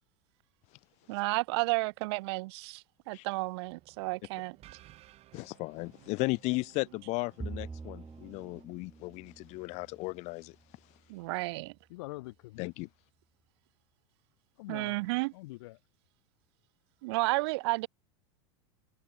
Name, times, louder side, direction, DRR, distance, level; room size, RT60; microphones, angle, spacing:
voice 1, 1.1-4.6 11.1-11.7 14.7-15.3 17.0-17.9, right 24 dB, 65° right, 0.4 m, -32 dB
sound 1, 3.6-8.6, right 15 dB, 45° right, 3.4 m, -59 dB
voice 2, 5.3-10.6 12.6-12.9, left 24 dB, 50° left, 0.6 m, -35 dB
Bowed string instrument, 7.4-10.9, right 4 dB, 15° right, 2.9 m, -46 dB
voice 3, 11.9-13.1 14.6-15.8, left 21 dB, 70° left, 1.4 m, -45 dB
hypercardioid pair, 105°, 15 cm